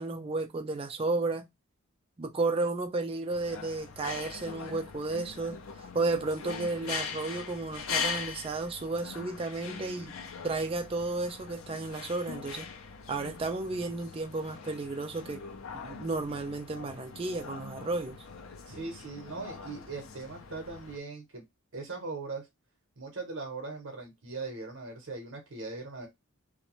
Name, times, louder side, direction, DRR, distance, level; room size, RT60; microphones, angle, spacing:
voice 1, 0.0-1.5 2.2-10.1 10.4-12.7 13.1-15.4 15.7-18.2, right 3 dB, 25° right, 0.4 m, -33 dB
sound 1, 3.3-21.0, left 5 dB, 75° left, 0.5 m, -41 dB
voice 2, 18.7-21.4 21.7-22.5 23.0-26.1, right 3 dB, 65° right, 0.8 m, -40 dB
2.6 x 2.2 x 2.9 m
head